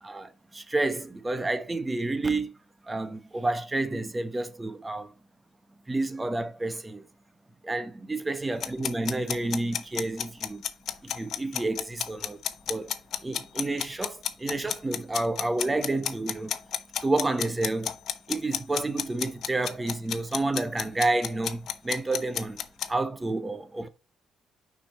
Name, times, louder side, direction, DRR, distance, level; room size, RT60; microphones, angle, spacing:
voice 1, 0.0-2.5 2.8-5.1 5.9-7.1 7.6-10.6 11.0-12.4 12.7-12.9 13.2-16.5 17.0-18.0 18.3-22.6 22.9-23.9, right 2 dB, 20° right, 1.1 m, -30 dB
sound 1, 8.6-22.9, left 9 dB, 70° left, 0.9 m, -31 dB
6.1 x 5.1 x 4.2 m
cardioid pair, 90°, 0 cm